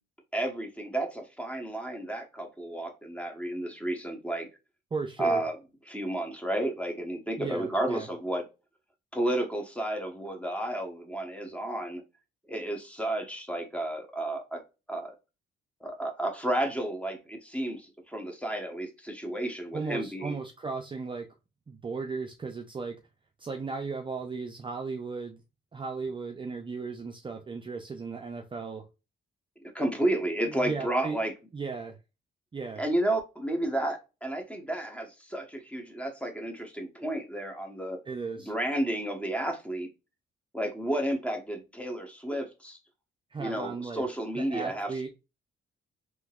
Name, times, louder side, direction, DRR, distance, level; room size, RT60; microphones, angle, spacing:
voice 1, 0.3-4.5 5.2-5.6 5.9-8.4 9.1-12.0 12.5-14.6 14.9-15.1 15.8-20.4 29.7-31.3 32.8-38.0 38.4-39.9 40.5-42.8 43.4-44.9, right 1 dB, 5° left, 1.1 m, -32 dB
voice 2, 4.9-5.4 7.4-8.1 19.7-21.3 21.7-23.0 23.4-25.4 25.7-28.8 30.5-31.2 31.5-32.0 32.5-32.8 38.1-38.5 43.3-44.0 44.3-45.1, right 4 dB, 25° right, 0.5 m, -36 dB
3.7 x 2.8 x 2.4 m
cardioid pair, 90°, 20 cm